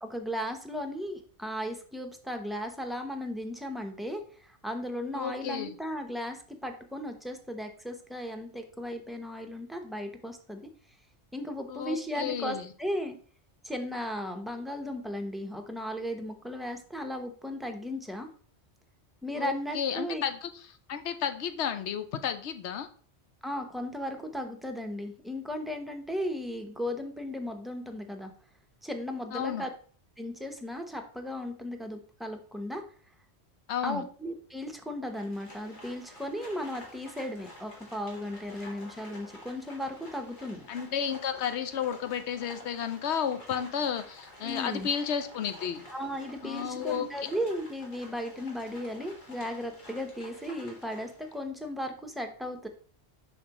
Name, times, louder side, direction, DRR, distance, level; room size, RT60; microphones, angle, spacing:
voice 1, 0.0-10.7 11.3-13.2 13.6-18.3 19.2-20.2 23.4-28.3 28.8-29.7 30.2-32.8 33.8-40.7 44.4-44.9 45.9-52.7, equal, ahead, 4 dB, 0.6 m, -36 dB
voice 2, 5.1-5.7 11.7-12.7 19.3-20.5 20.9-22.9 29.3-29.6 33.7-34.0 40.7-45.8 46.4-47.1, left 8 dB, 80° left, 9 dB, 0.9 m, -32 dB
Livestock farm animals working animals, 35.1-51.4, left 1 dB, 45° left, 1.7 m, -50 dB
7.2 x 5.5 x 2.9 m, 0.43 s
omnidirectional pair, 1.1 m